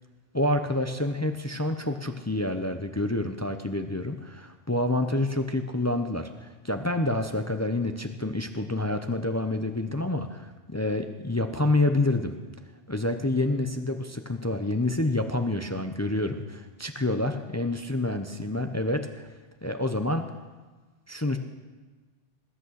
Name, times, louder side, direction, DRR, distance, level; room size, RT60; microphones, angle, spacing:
voice 1, 0.3-12.3 12.9-19.3 19.6-20.3 21.1-21.4, left 2 dB, 20° left, 7 dB, 0.5 m, -28 dB
20.0 x 8.4 x 6.4 m, 1.3 s
omnidirectional pair, 1.3 m